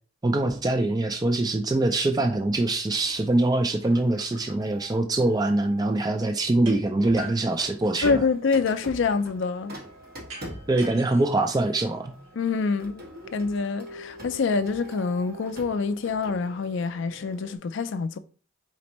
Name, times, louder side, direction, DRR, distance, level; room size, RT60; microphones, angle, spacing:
voice 1, 0.2-8.2 10.7-12.2, right 2 dB, 20° right, 0.3 m, -24 dB
Printer, 3.0-6.3 7.0-17.6, equal, 45° right, 1.3 m, -44 dB
sound 1, 6.7-6.8 7.2-8.4 10.3-12.3, equal, 80° right, 1.8 m, -43 dB
voice 2, 8.0-9.7 12.4-13.0 13.3-18.2, left 4 dB, 55° left, 0.4 m, -26 dB
4.3 x 4.1 x 3.0 m
head